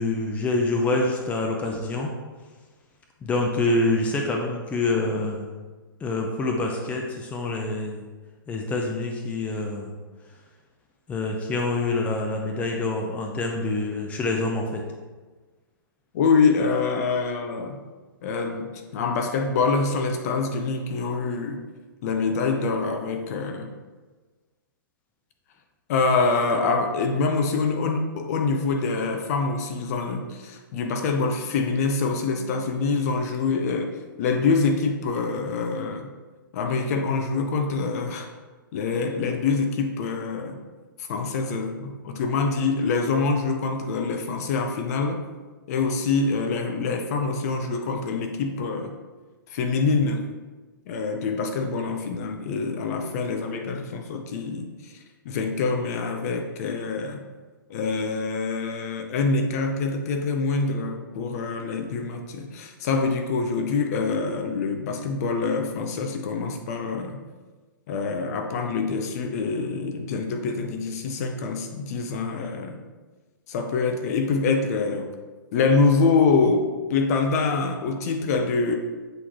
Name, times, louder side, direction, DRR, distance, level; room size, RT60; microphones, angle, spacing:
voice 1, 0.0-2.1 3.2-5.5 6.0-8.0 8.5-9.9 11.1-14.8, left 2 dB, 10° left, 1 dB, 0.6 m, -26 dB
voice 2, 16.1-17.8 18.2-21.6 22.0-23.7 25.9-33.9 34.2-36.1 36.5-38.3 38.7-40.6 41.0-45.2 45.7-48.9 49.5-50.2 50.9-54.9 55.2-57.2 57.7-67.2 67.9-72.8 73.5-75.1 75.5-78.8, left 4 dB, 45° left, 5 dB, 0.7 m, -25 dB
7.9 x 3.9 x 3.0 m, 1.3 s
hypercardioid pair, 135°, 12 cm